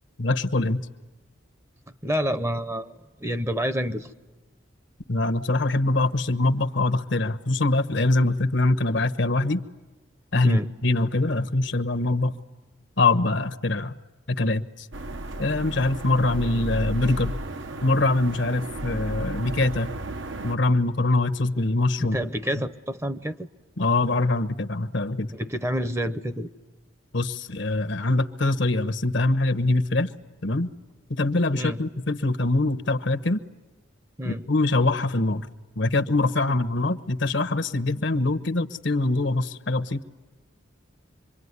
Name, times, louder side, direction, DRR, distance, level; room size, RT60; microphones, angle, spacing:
voice 1, 0.2-0.8 5.1-9.6 10.3-12.3 13.0-13.9 14.4-14.9 15.4-17.3 17.8-19.9 20.4-22.2 23.8-25.3 27.1-30.1 30.4-30.7 31.1-33.4 34.2-35.5 35.8-40.0, left 2 dB, 65° left, 9 dB, 1.1 m, -23 dB
voice 2, 1.9-2.9 3.2-4.1 10.4-10.7 22.0-23.5 25.3-26.5 31.6-31.8 34.2-34.4 36.4-36.6, equal, 15° right, 12 dB, 0.8 m, -28 dB
sound 1, 14.9-20.6, right 1 dB, 70° right, 1.1 m, -34 dB
26.5 x 23.5 x 9.7 m, 1.2 s
head